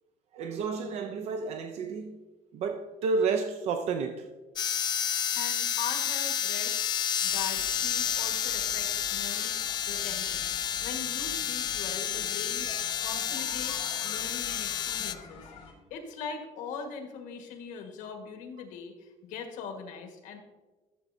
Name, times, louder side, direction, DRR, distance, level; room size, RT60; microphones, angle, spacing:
voice 1, 0.3-2.2 2.5-4.3, right 4 dB, 55° right, 0.5 m, -31 dB
sound 1, 4.6-15.1, left 9 dB, 35° left, 0.3 m, -30 dB
voice 2, 5.3-6.8 7.2-12.7 13.0-15.5 15.9-20.4, left 6 dB, 80° left, 1.5 m, -41 dB
sound 2, 7.2-15.7, left 4 dB, 50° left, 2.8 m, -48 dB
13.0 x 7.2 x 2.7 m
cardioid pair, 165°, 13 cm